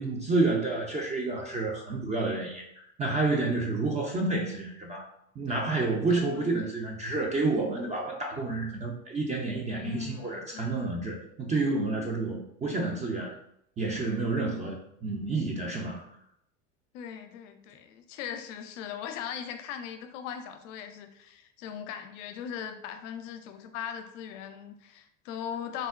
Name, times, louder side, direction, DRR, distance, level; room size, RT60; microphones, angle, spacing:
voice 1, 0.0-5.1 5.4-13.3 13.8-16.0, right 3 dB, 20° right, -1 dB, 0.4 m, -29 dB
voice 2, 5.5-5.8 6.1-6.7 9.7-11.0 16.9-25.9, left 8 dB, 70° left, 8 dB, 0.5 m, -39 dB
3.4 x 2.1 x 2.3 m, 0.72 s
hypercardioid pair, 85°, 39 cm